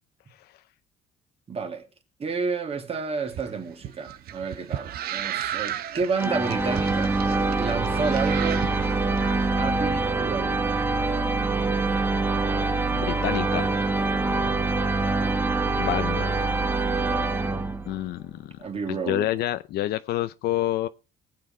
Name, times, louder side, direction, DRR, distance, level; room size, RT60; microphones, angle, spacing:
voice 1, 1.5-1.9 2.2-7.2 7.6-8.8 9.6-10.7 14.2-14.6 18.6-19.3, right 5 dB, 35° right, 2.7 m, -31 dB
sound 1, 3.3-9.6, right 11 dB, 65° right, 0.9 m, -35 dB
sound 2, 6.2-18.1, right 3 dB, 15° right, 1.1 m, -25 dB
voice 2, 12.9-13.9 15.8-16.4 17.9-18.6 18.9-20.9, left 14 dB, 70° left, 0.6 m, -28 dB
19.0 x 7.7 x 4.3 m
cardioid pair, 110°, 17 cm